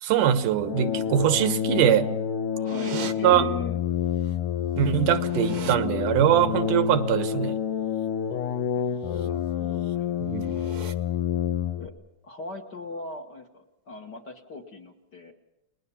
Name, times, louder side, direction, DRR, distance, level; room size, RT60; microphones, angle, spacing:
voice 1, 0.0-2.1 3.2-3.5 4.8-7.6 10.2-10.6, right 10 dB, 90° right, 12 dB, 2.7 m, -22 dB
sound 1, 0.6-11.9, left 9 dB, 90° left, 2.7 m, -28 dB
voice 2, 2.5-3.8 8.3-8.4 8.8-10.1 10.4-10.9 11.8-11.9 12.2-15.3, left 3 dB, 45° left, 4 dB, 1.6 m, -40 dB
sound 2, 2.6-3.1 4.3-4.4 4.7-5.8 8.9-9.3 9.6-9.9 10.4-10.9, right 7 dB, 60° right, 1.3 m, -39 dB
29.5 x 21.0 x 7.1 m, 0.83 s
omnidirectional pair, 3.6 m